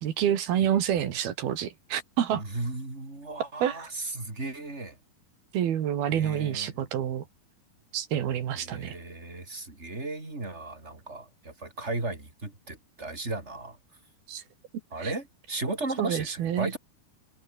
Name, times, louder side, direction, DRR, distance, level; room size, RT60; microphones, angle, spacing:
voice 1, 0.0-2.4 3.6-3.8 5.5-7.3 7.9-8.9 14.3-14.4 15.0-15.1 16.0-16.7, right 10 dB, 70° right, 3.9 m, -28 dB
voice 2, 2.3-5.0 6.1-6.9 8.5-13.8 14.9-16.8, right 2 dB, 15° right, 5.3 m, -35 dB
open air
omnidirectional pair, 4.6 m